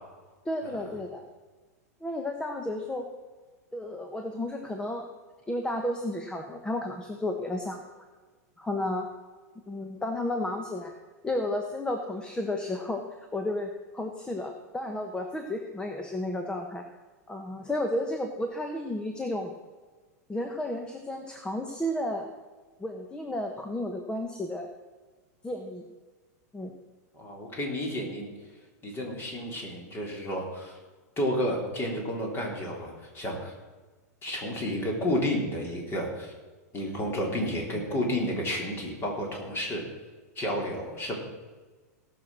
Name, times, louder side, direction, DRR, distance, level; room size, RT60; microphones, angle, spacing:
voice 1, 0.4-1.3 2.0-3.1 3.7-5.1 5.5-7.8 8.6-9.1 9.7-10.9 11.2-13.0 13.3-16.8 17.3-19.5 20.3-22.3 22.8-24.7 25.4-25.8 26.5-26.7, left 1 dB, 10° left, 4 dB, 1.2 m, -32 dB
voice 2, 27.1-28.3 28.8-30.8 31.2-33.5 34.2-36.3 36.7-39.8 40.4-41.1, equal, 25° left, 0 dB, 3.9 m, -31 dB
17.5 x 6.4 x 6.3 m, 1.3 s
hypercardioid pair, 115°, 9 cm